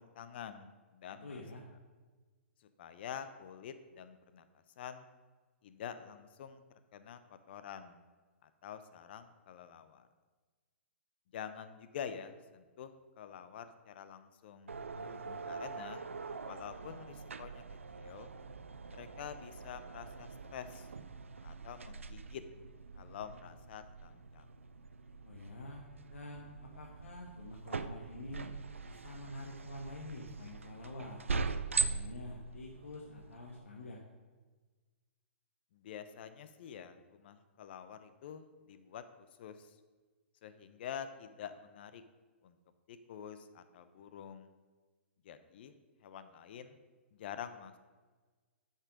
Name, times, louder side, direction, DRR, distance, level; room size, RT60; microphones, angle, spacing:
voice 1, 0.0-1.4 2.6-4.4 4.8-5.1 5.6-6.6 6.9-8.0 8.4-10.1 11.3-14.7 15.5-16.0 16.5-17.6 17.9-18.3 18.9-20.9 21.4-22.4 22.9-24.5 35.7-39.8 40.4-42.0 42.4-42.6 42.9-44.5 45.2-45.7 46.0-46.8 47.1-47.7, left 8 dB, 55° left, 11 dB, 0.7 m, -47 dB
voice 2, 1.2-1.6 14.9-15.5 25.2-25.8 26.1-28.5 28.8-31.2 31.8-34.0, left 2 dB, 80° left, -1 dB, 1.1 m, -47 dB
sound 1, 14.7-33.6, right 4 dB, 85° right, 0.4 m, -42 dB
8.6 x 5.4 x 5.2 m, 1.3 s
hypercardioid pair, 120°, 7 cm